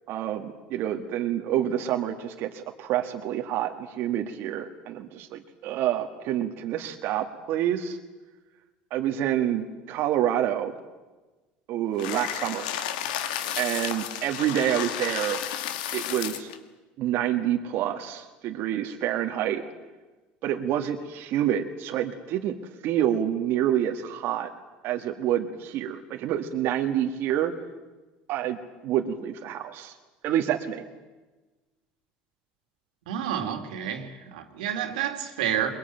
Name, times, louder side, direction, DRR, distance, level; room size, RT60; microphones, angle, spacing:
voice 1, 0.1-8.0 8.9-10.7 11.7-12.7 13.6-15.4 15.9-16.5 17.0-19.6 20.4-22.6 22.8-24.5 24.8-27.5 28.3-28.6 28.8-29.9 30.2-30.8, right 11 dB, 60° right, 1.7 m, -27 dB
sound 1, 12.0-16.6, left 10 dB, 85° left, 1.9 m, -32 dB
voice 2, 33.1-35.7, right 9 dB, 90° right, 2.6 m, -29 dB
22.0 x 22.0 x 9.1 m
supercardioid pair, 95°, 4 cm